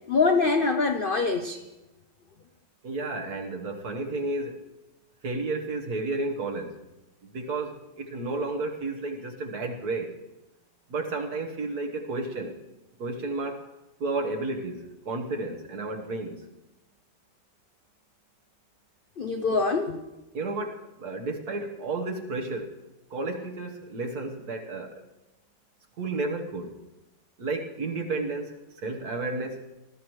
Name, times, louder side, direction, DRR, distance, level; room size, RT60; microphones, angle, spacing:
voice 1, 0.1-1.6 19.2-20.0, left 4 dB, 65° left, 6 dB, 0.5 m, -24 dB
voice 2, 2.8-4.6 5.2-6.8 7.2-10.1 10.9-12.6 13.0-13.7 14.0-16.4 19.5-19.6 20.3-22.7 23.1-25.0 26.0-26.7 27.4-29.7, right 3 dB, 60° right, 2 dB, 1.7 m, -32 dB
20.0 x 13.0 x 3.1 m, 0.97 s
omnidirectional pair, 1.9 m